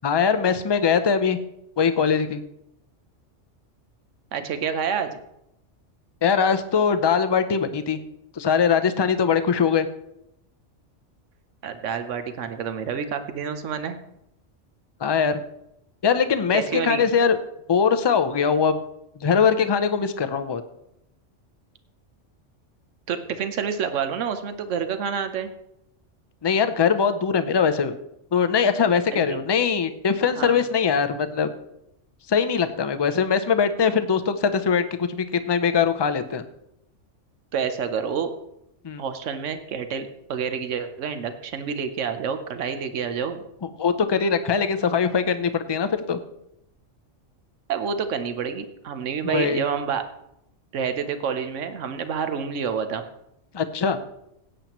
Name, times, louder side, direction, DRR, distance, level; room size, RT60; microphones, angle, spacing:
voice 1, 0.0-1.4 1.8-2.4 6.2-8.0 8.4-9.9 15.0-15.4 16.0-17.4 17.7-18.8 19.2-20.6 26.4-27.9 28.3-31.5 32.3-36.4 38.8-39.0 43.6-46.2 49.2-49.6 53.5-54.0, left 6 dB, 40° left, 10 dB, 0.3 m, -21 dB
voice 2, 4.3-5.2 11.6-14.0 16.5-17.1 23.1-25.5 29.1-29.4 30.3-30.6 37.5-38.3 39.0-43.4 47.7-50.0 50.7-53.0, right 7 dB, 75° right, 9 dB, 1.2 m, -28 dB
16.5 x 8.7 x 3.0 m, 0.81 s
omnidirectional pair, 1.3 m